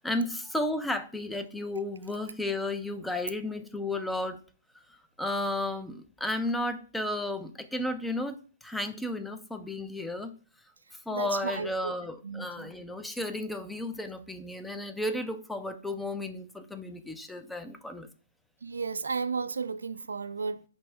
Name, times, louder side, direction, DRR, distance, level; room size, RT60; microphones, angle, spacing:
voice 1, 0.0-4.4 4.9-8.4 8.6-10.3 11.1-18.1, left 1 dB, 5° left, 0.4 m, -33 dB
voice 2, 11.1-11.9 12.2-12.7 18.6-20.6, right 5 dB, 90° right, 0.4 m, -33 dB
5.2 x 2.0 x 4.5 m
hypercardioid pair, 140°, 0 cm